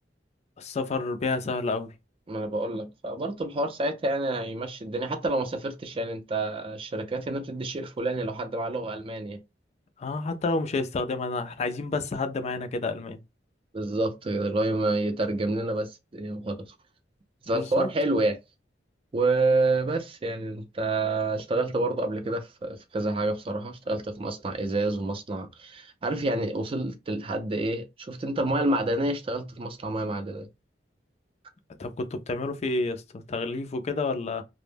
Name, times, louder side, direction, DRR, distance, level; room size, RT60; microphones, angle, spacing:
voice 1, 0.6-1.9 10.0-13.2 17.5-17.9 31.8-34.4, left 3 dB, 35° left, 0.4 m, -30 dB
voice 2, 2.3-9.4 13.7-16.6 17.5-18.4 19.1-30.5, right 2 dB, 30° right, 0.4 m, -28 dB
2.1 x 2.0 x 3.2 m
head